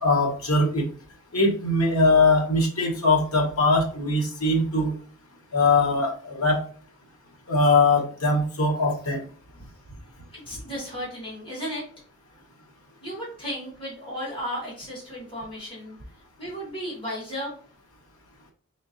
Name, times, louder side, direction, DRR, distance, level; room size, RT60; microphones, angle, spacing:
voice 1, 0.0-0.8 1.3-4.9 5.5-6.6 7.5-9.2, left 2 dB, 90° left, 0 dB, 1.1 m, -21 dB
voice 2, 10.3-11.8 13.0-16.0 16.4-17.5, equal, 25° left, -8 dB, 2.0 m, -34 dB
3.7 x 3.6 x 2.7 m, 0.43 s
head